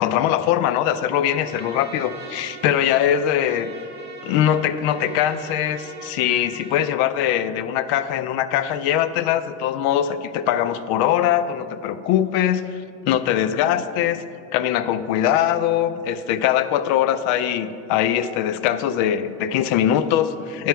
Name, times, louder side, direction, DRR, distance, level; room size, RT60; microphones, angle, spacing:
voice 1, 0.0-3.7 4.2-14.2 14.5-20.7, left 10 dB, 80° left, 13 dB, 0.5 m, -22 dB
Trumpet, 1.3-7.0, right 4 dB, 25° right, 1.3 m, -41 dB
10.5 x 4.7 x 4.6 m, 2.6 s
supercardioid pair, 105°, 38 cm